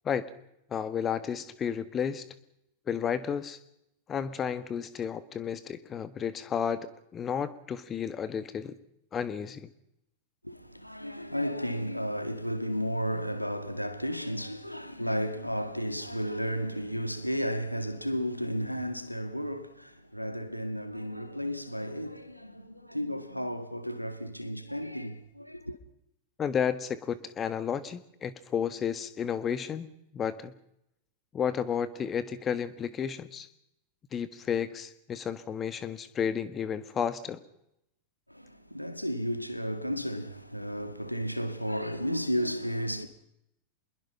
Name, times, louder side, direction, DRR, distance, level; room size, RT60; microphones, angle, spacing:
voice 1, 0.7-2.2 2.9-3.6 4.1-8.8 9.1-9.7 26.4-30.5 31.3-33.5 34.1-37.4, left 7 dB, 25° left, 1.6 m, -32 dB
voice 2, 10.4-25.8 38.3-43.1, equal, 90° left, 2.0 m, -33 dB
27.0 x 22.0 x 5.8 m
figure-of-eight pair, 90°, 0 cm